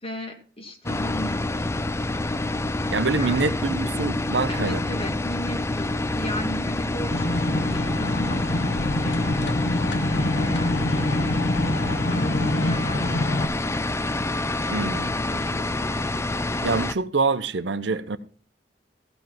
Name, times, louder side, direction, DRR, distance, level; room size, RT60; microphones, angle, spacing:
voice 1, 0.0-1.7 3.1-3.8 4.5-11.4 12.1-13.1 14.9-16.0, left 1 dB, 35° left, 1.4 m, -36 dB
sound 1, 0.9-16.9, left 2 dB, 15° left, 0.4 m, -27 dB
voice 2, 2.9-4.8 14.7-15.1 16.6-18.2, right 4 dB, 85° right, 0.8 m, -25 dB
sound 2, 7.1-13.4, left 1 dB, 70° left, 1.1 m, -26 dB
15.0 x 5.4 x 5.9 m
head